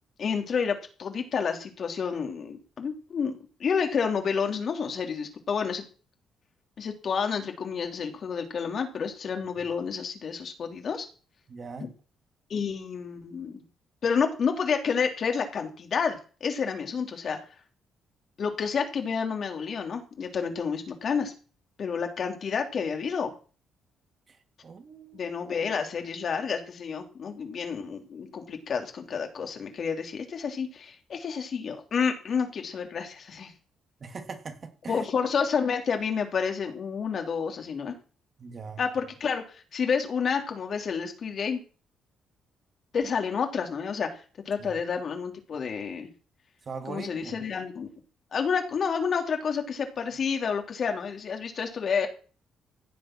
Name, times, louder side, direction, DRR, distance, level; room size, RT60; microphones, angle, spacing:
voice 1, 0.2-3.3 3.6-5.8 6.8-11.1 11.8-11.9 12.5-13.6 14.0-17.4 18.4-21.3 21.8-23.3 25.1-33.5 34.9-37.9 38.8-41.6 42.9-46.1 46.9-47.9 48.3-52.1, left 6 dB, 55° left, 3.3 m, -29 dB
voice 2, 11.5-11.9 24.3-25.3 34.0-35.0 38.4-38.8 44.6-44.7 46.6-47.3, right 4 dB, 40° right, 2.8 m, -41 dB
16.0 x 7.8 x 6.2 m
cardioid pair, 90°, 0 cm